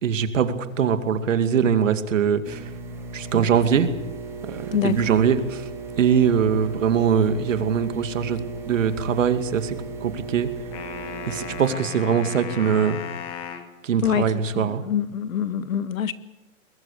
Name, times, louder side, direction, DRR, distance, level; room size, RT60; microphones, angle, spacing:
voice 1, 0.0-2.7 3.1-3.9 4.4-5.7 6.0-8.4 8.7-9.8 10.0-10.5 11.3-13.0 13.8-14.8, right 7 dB, 65° right, 2.5 m, -22 dB
sound 1, 2.4-11.7, right 4 dB, 5° right, 2.0 m, -36 dB
sound 2, 10.7-13.7, left 9 dB, 15° left, 1.2 m, -36 dB
voice 2, 14.5-16.1, left 8 dB, 75° left, 1.7 m, -25 dB
25.0 x 22.0 x 6.8 m
hypercardioid pair, 175°, 41 cm